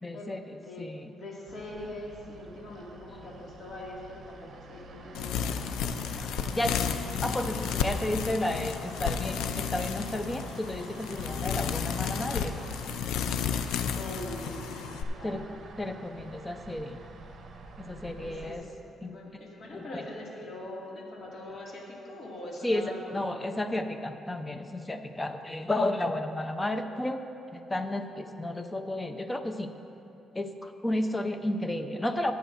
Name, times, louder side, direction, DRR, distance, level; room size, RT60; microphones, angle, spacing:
voice 1, 0.0-1.1 6.1-6.3 6.5-6.8 7.2-12.6 15.2-15.4 15.8-17.0 17.8-18.6 19.0-19.2 19.7-20.0 22.6-27.3 27.5-29.7 30.3-32.3, left 1 dB, 15° left, 7 dB, 0.7 m, -32 dB
voice 2, 0.6-0.9 1.2-7.0 13.9-15.4 18.2-18.6 19.0-23.3, left 1 dB, 50° left, -3 dB, 2.2 m, -42 dB
sound 1, 1.5-18.5, right 3 dB, 55° right, 0.9 m, -48 dB
sound 2, 5.1-15.0, left 7 dB, 90° left, 0.4 m, -32 dB
18.0 x 8.1 x 2.6 m, 3.0 s
cardioid pair, 90°, 0 cm